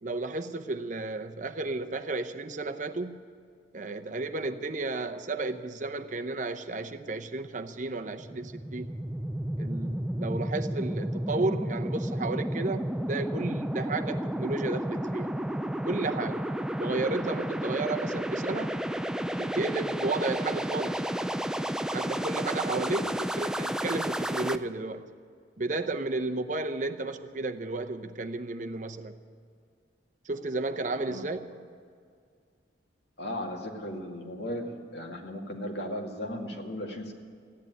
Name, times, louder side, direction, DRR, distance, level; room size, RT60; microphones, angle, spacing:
voice 1, 0.0-3.2 3.7-8.9 9.6-15.3 15.8-16.5 16.8-18.7 19.4-21.1 21.9-25.1 25.6-29.1 30.3-31.6, right 3 dB, 45° right, 8 dB, 0.7 m, -33 dB
sound 1, 8.0-24.6, right 1 dB, 5° right, 0.4 m, -32 dB
voice 2, 30.9-31.3 33.2-34.7 34.9-37.1, left 1 dB, 70° left, 1 dB, 2.2 m, -36 dB
15.0 x 10.0 x 9.4 m, 2.1 s
head